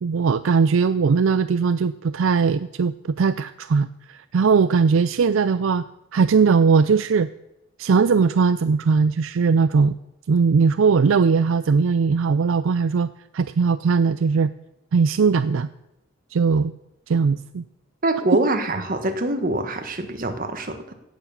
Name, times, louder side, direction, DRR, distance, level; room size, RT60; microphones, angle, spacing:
voice 1, 0.0-5.8 6.1-7.3 7.8-9.9 10.3-14.5 14.9-15.7 16.3-16.7 17.1-17.6, right 5 dB, 70° right, 13 dB, 0.4 m, -19 dB
voice 2, 18.0-20.9, right 2 dB, 40° right, 7 dB, 1.4 m, -24 dB
17.0 x 7.1 x 7.1 m, 0.93 s
head